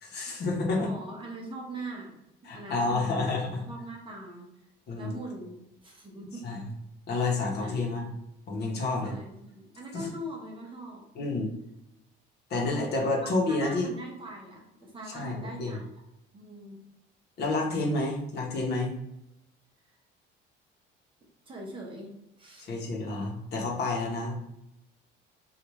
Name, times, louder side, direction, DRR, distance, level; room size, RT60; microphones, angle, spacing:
voice 1, 0.0-0.9 2.4-3.6 4.9-5.2 6.4-6.7 7.1-8.1 8.5-9.1 9.9-10.1 11.1-11.6 12.5-13.9 15.1-15.8 17.4-18.9 22.6-24.5, left 3 dB, 55° left, -1 dB, 0.9 m, -29 dB
voice 2, 0.8-2.1 2.5-3.4 3.7-4.5 4.9-5.6 5.8-6.6 7.6-7.9 9.0-11.0 13.0-15.9 16.3-16.8 21.5-22.7, right 1 dB, 25° right, -1 dB, 0.8 m, -42 dB
3.3 x 2.4 x 3.0 m, 0.85 s
cardioid pair, 135°, 21 cm